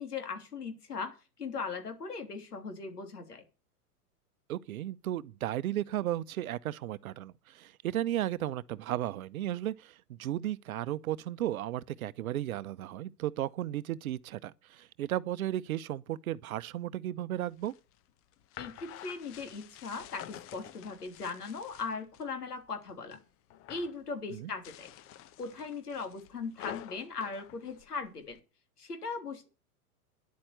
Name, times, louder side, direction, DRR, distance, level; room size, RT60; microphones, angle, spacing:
voice 1, 0.0-3.4 18.6-23.2 23.7-24.9 25.4-28.4 28.8-29.5, left 4 dB, 80° left, 3.3 m, -39 dB
voice 2, 4.5-17.7 24.3-24.5, right 13 dB, 65° right, 0.8 m, -34 dB
sound 1, 17.4-22.3 22.7-23.2 23.5-24.0 24.5-28.4, left 11 dB, 30° left, 0.9 m, -49 dB
10.5 x 8.6 x 8.2 m
figure-of-eight pair, 105°, 46 cm